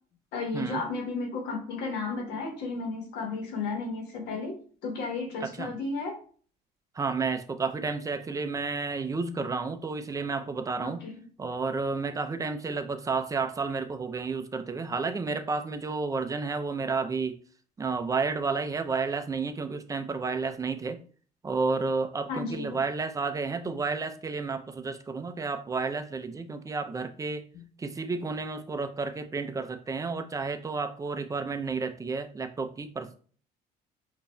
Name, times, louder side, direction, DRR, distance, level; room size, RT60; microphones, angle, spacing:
voice 1, 0.3-6.2 10.8-11.2 22.3-22.8 27.5-27.6, left 3 dB, 85° left, 3 dB, 1.2 m, -33 dB
voice 2, 7.0-11.0 11.4-17.4 17.8-21.0 21.4-27.4 27.8-33.2, right 4 dB, 20° right, 8 dB, 0.5 m, -31 dB
5.2 x 2.5 x 2.3 m, 0.43 s
cardioid pair, 110°, 17 cm